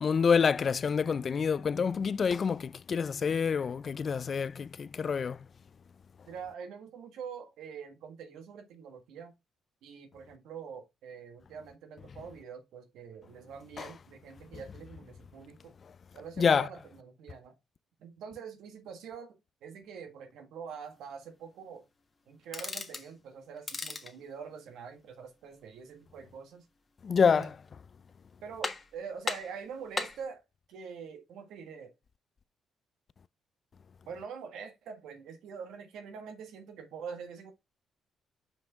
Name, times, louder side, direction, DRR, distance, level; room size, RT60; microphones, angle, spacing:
voice 1, 0.0-5.4 16.4-16.6 27.0-27.5, left 6 dB, 45° left, 0.4 m, -27 dB
voice 2, 6.3-9.3 9.8-15.8 16.1-17.5 18.0-21.9 22.3-26.6 27.3-27.5 28.4-30.4 30.7-31.9 34.0-37.5, right 6 dB, 85° right, 1.5 m, -45 dB
sound 1, 22.4-23.1 23.6-24.2 27.2-27.7 28.1-28.2 28.6-29.0 29.2-30.2, left 3 dB, 30° left, 1.4 m, -37 dB
5.8 x 5.0 x 3.5 m
cardioid pair, 90°, 0 cm